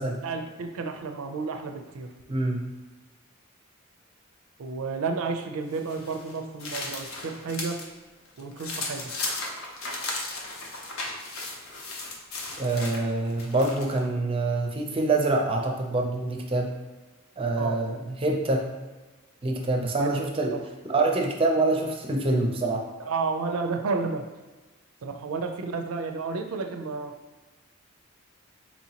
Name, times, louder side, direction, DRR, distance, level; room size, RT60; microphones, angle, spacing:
voice 1, 0.2-2.1 4.6-7.8 8.4-9.1 17.6-17.8 20.0-20.1 20.5-20.6 23.0-24.2 25.0-27.1, right 4 dB, 85° right, 5 dB, 0.4 m, -31 dB
voice 2, 2.3-2.7 12.6-16.7 17.4-18.6 19.4-20.6 20.9-22.8, right 2 dB, 25° right, 1 dB, 0.4 m, -25 dB
sound 1, 5.7-7.9 8.2-14.0, left 2 dB, 75° left, 0.7 m, -36 dB
4.4 x 2.8 x 2.8 m, 1.2 s
head